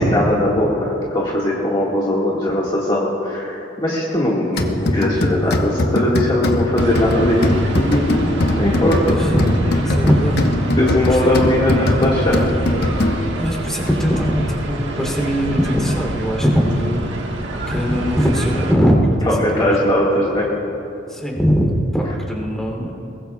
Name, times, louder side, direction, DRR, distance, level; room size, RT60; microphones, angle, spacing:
voice 1, 0.1-7.5 7.8-8.3 8.5-9.3 10.8-12.5 19.3-20.5, left 1 dB, 25° left, -6 dB, 1.9 m, -19 dB
sound 1, 4.6-13.5, left 1 dB, 60° left, 1.1 m, -21 dB
sound 2, 6.8-18.7, right 1 dB, 65° right, 1.6 m, -28 dB
voice 2, 9.2-10.4 11.1-11.5 13.4-17.0 17.7-19.0 19.5-19.7 21.1-22.9, equal, 5° left, -2 dB, 3.2 m, -20 dB
22.5 x 20.5 x 2.4 m, 3.0 s
head